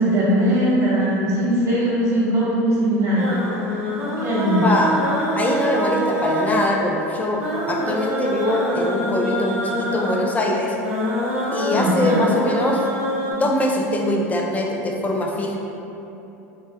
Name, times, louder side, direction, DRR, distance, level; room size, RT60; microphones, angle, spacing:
voice 1, 0.0-3.3 3.6-3.9 4.2-4.6 11.7-12.2, right 1 dB, 35° right, -7 dB, 1.1 m, -20 dB
sound 1, 3.2-13.3, equal, 10° right, 1.0 m, -25 dB
voice 2, 4.6-5.0 5.4-7.4 7.7-10.7 11.5-12.8 13.3-15.6, left 1 dB, 20° left, 0 dB, 0.4 m, -22 dB
3.1 x 3.1 x 2.3 m, 3.0 s
hypercardioid pair, 95°, 8 cm